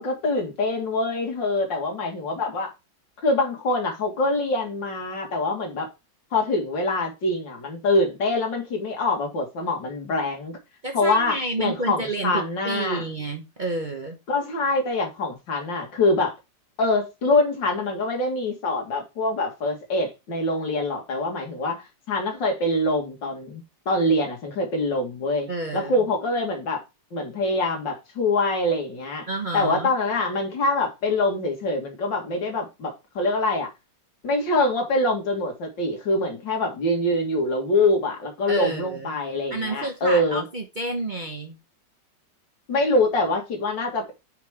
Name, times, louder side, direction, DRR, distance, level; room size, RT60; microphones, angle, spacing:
voice 1, 0.0-2.7 3.2-5.9 6.3-10.6 10.9-13.0 14.3-16.3 16.8-26.8 27.1-29.3 29.5-33.7 34.2-40.4 42.7-44.1, left 2 dB, 80° left, 2.6 m, -24 dB
voice 2, 10.8-14.2 25.5-26.1 29.3-29.9 38.5-39.2 39.5-41.6, right 2 dB, 35° right, 0.8 m, -30 dB
5.1 x 5.1 x 4.7 m
omnidirectional pair, 2.0 m